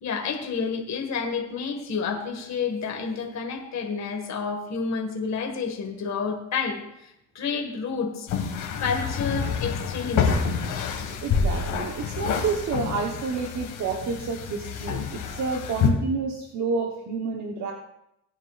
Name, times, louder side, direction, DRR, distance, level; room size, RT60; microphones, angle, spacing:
voice 1, 0.0-8.3 8.8-10.4, left 5 dB, 65° left, 2 dB, 2.0 m, -30 dB
sound 1, 8.3-15.9, left 6 dB, 85° left, 2.0 m, -28 dB
voice 2, 11.2-17.7, right 4 dB, 65° right, 1 dB, 1.3 m, -29 dB
18.0 x 9.7 x 2.6 m, 0.82 s
cardioid pair, 90°, 30 cm